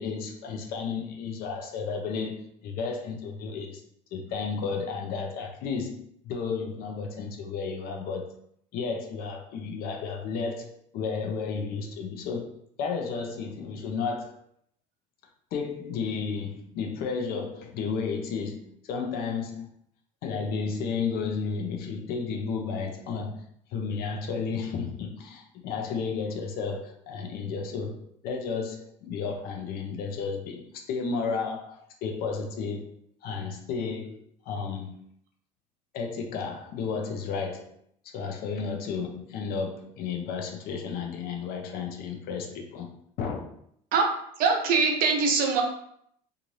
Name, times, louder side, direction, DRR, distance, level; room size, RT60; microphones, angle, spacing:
voice 1, 0.0-2.4 2.6-3.8 4.1-6.0 6.2-8.3 8.7-12.5 12.8-14.4 15.5-19.7 20.2-23.4 23.7-28.0 28.2-32.9 33.2-34.2 34.5-35.0 35.9-37.7 38.0-42.9 43.2-43.4, left 5 dB, 60° left, 3 dB, 0.6 m, -32 dB
voice 2, 44.4-45.6, right 5 dB, 55° right, 3 dB, 0.7 m, -22 dB
2.6 x 2.4 x 3.1 m, 0.70 s
supercardioid pair, 100°, 18 cm